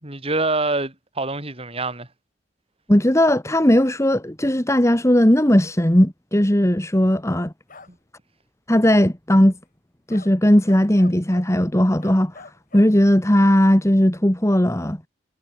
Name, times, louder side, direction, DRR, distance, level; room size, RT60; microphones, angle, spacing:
voice 1, 0.0-2.1 7.9-8.0, right 2 dB, 30° right, 5.1 m, -25 dB
voice 2, 2.9-7.5 8.7-9.5 10.1-12.3 12.7-15.0, equal, 15° left, 1.6 m, -17 dB
sound 1, 7.7-7.9 10.1-10.3 10.7-11.5 12.0-12.9, left 3 dB, 45° left, 4.9 m, -44 dB
head